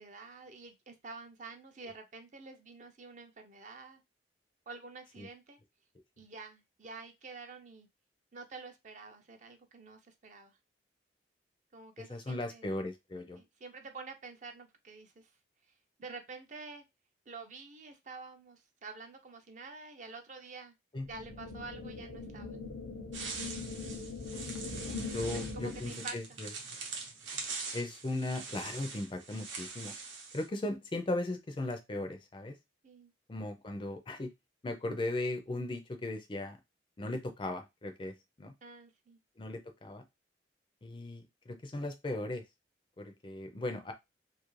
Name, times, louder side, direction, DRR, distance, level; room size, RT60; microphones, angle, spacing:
voice 1, 0.0-4.0 4.7-5.6 6.2-7.9 8.3-10.6 11.7-12.7 13.4-15.3 16.0-16.8 17.3-20.7 21.1-22.6 25.1-25.3 25.5-26.4 32.8-33.1 38.6-39.2, right 3 dB, 40° right, 6 dB, 0.5 m, -48 dB
voice 2, 12.1-13.4 20.9-21.1 24.3-26.5 27.3-27.4 27.7-29.9 30.3-32.5 33.3-34.3 34.6-36.6 37.0-38.5 39.4-40.0 40.8-42.4 43.0-43.9, left 2 dB, 25° left, 6 dB, 0.4 m, -37 dB
sound 1, 21.1-26.1, left 4 dB, 85° left, 0.7 m, -41 dB
sound 2, 23.1-30.5, right 4 dB, 85° right, 0.8 m, -43 dB
2.7 x 2.4 x 3.0 m, 0.21 s
head